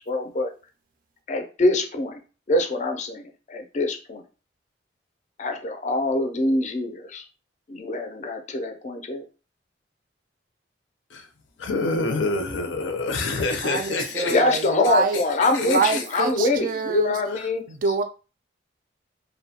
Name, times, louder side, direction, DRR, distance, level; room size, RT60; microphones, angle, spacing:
voice 1, 0.1-0.5 1.3-2.2 2.5-4.2 5.4-7.2 7.7-9.2 14.2-17.6, left 2 dB, 40° left, 0.4 m, -24 dB
voice 2, 11.6-14.4 15.5-16.0, left 3 dB, 90° left, 0.5 m, -27 dB
voice 3, 13.6-15.2 15.6-17.2 17.7-18.0, right 4 dB, 45° right, 0.3 m, -25 dB
2.6 x 2.1 x 2.7 m
head